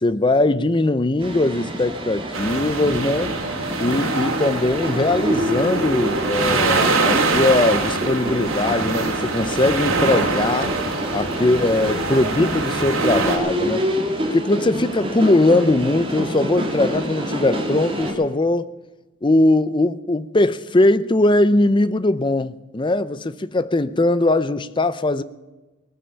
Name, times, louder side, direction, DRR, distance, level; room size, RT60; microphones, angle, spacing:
voice 1, 0.0-3.4 3.8-10.8 11.1-13.9 14.3-18.7 19.2-25.2, left 2 dB, 25° left, 0.6 m, -20 dB
sound 1, 1.2-18.1, equal, 25° right, 2.4 m, -27 dB
sound 2, 2.3-13.4, right 3 dB, 85° right, 3.0 m, -24 dB
19.0 x 9.9 x 7.0 m
head